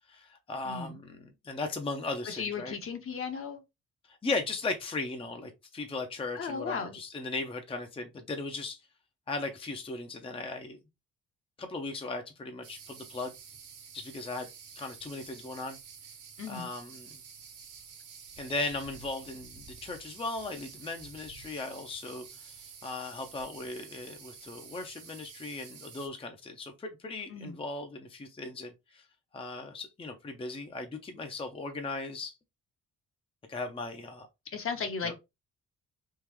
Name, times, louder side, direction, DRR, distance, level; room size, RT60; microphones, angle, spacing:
voice 1, 0.1-2.8 4.0-8.8 9.3-10.8 11.6-13.3 13.9-14.5 14.8-15.8 16.5-17.2 18.4-29.1 29.3-32.4 33.5-34.3 35.0-35.1, left 3 dB, 20° left, 0.6 m, -37 dB
voice 2, 0.6-1.0 2.3-3.6 6.3-7.0 16.4-16.7 27.3-27.6 34.5-35.2, left 5 dB, 45° left, 0.9 m, -35 dB
sound 1, 12.6-26.1, right 6 dB, 75° right, 1.2 m, -50 dB
3.7 x 2.5 x 3.0 m
cardioid pair, 90°, 30 cm